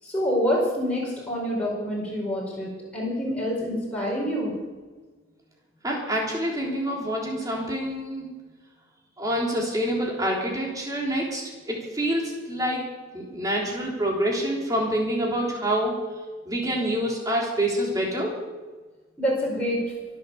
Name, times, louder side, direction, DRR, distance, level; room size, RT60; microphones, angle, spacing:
voice 1, 0.0-4.5 19.2-19.8, equal, 5° left, -5 dB, 4.8 m, -26 dB
voice 2, 5.8-8.3 9.2-12.8 13.1-16.0 16.5-18.4, equal, 20° right, -2 dB, 3.6 m, -27 dB
23.5 x 7.9 x 7.2 m, 1.3 s
head